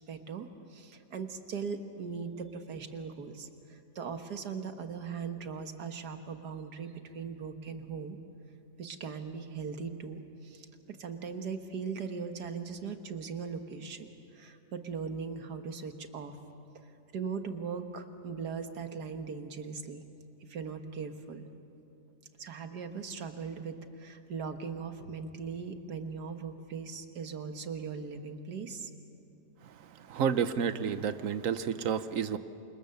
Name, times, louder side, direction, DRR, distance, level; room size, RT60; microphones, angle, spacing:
voice 1, 0.1-8.2 8.8-16.4 17.1-20.0 20.5-21.5 22.4-28.9, right 5 dB, 75° right, 7 dB, 1.9 m, -39 dB
voice 2, 30.1-32.4, right 7 dB, 55° right, 12 dB, 1.2 m, -30 dB
28.5 x 26.5 x 7.0 m, 2.7 s
omnidirectional pair, 1.8 m